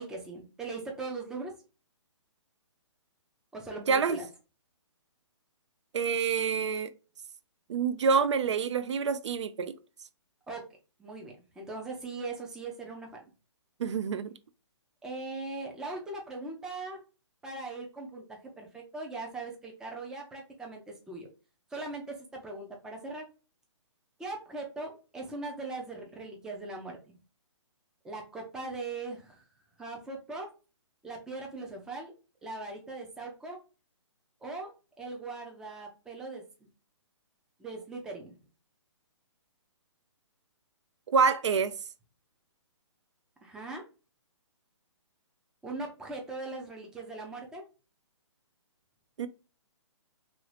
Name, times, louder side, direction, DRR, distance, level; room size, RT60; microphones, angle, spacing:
voice 1, 0.0-1.5 3.5-4.3 10.5-10.6 11.0-13.1 15.0-17.0 17.4-21.3 21.7-23.3 24.2-27.0 28.0-29.4 29.8-30.5 31.0-32.1 32.4-33.6 34.4-34.7 35.0-36.4 37.6-38.3 43.4-43.8 45.6-47.6, right 3 dB, 5° right, 0.4 m, -40 dB
voice 2, 3.9-4.2 5.9-6.9 7.7-9.8 13.8-14.3 41.1-41.7 49.2-49.3, right 5 dB, 70° right, 0.4 m, -27 dB
3.0 x 2.7 x 3.1 m
hypercardioid pair, 150°, 16 cm